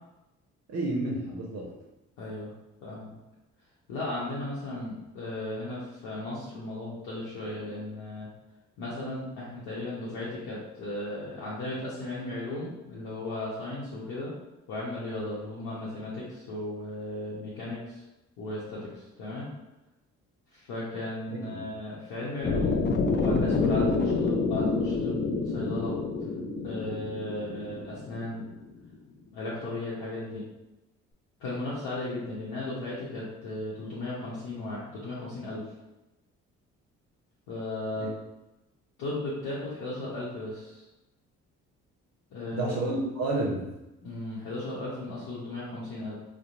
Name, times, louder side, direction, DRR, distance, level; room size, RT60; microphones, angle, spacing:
voice 1, 0.7-1.7 21.3-21.6 37.9-38.1 42.5-43.7, right 2 dB, 45° right, -4 dB, 0.6 m, -30 dB
voice 2, 2.2-2.5 2.8-3.1 3.9-8.3 8.8-14.3 14.7-18.0 18.4-19.5 20.5-22.8 23.1-26.0 26.6-28.4 29.3-30.4 31.4-35.6 37.5-38.1 39.0-40.9 42.3-42.7 44.0-46.1, left 2 dB, 70° left, -8 dB, 0.8 m, -36 dB
sound 1, 22.4-28.5, left 3 dB, 30° left, 0.4 m, -28 dB
2.8 x 2.1 x 2.4 m, 0.97 s
hypercardioid pair, 45°, 37 cm